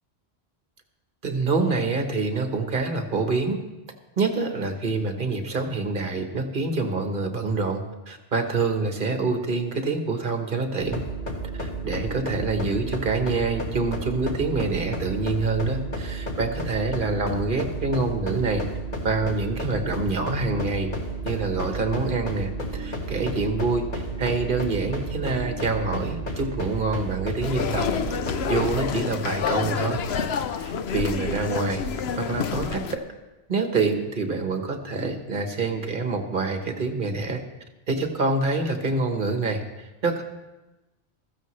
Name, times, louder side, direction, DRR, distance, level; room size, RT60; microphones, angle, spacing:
voice 1, 1.2-3.6 4.2-11.0 11.6-18.7 19.0-20.9 21.2-23.9 24.2-27.9 28.5-30.0 30.5-31.8 32.2-33.0 33.5-37.4 37.9-40.2, right 3 dB, 50° right, 5 dB, 1.4 m, -26 dB
sound 1, 10.8-28.9, right 2 dB, 50° left, 1.6 m, -32 dB
sound 2, 27.4-33.0, left 6 dB, 75° left, 0.9 m, -28 dB
15.5 x 14.0 x 3.2 m, 1.1 s
omnidirectional pair, 1.1 m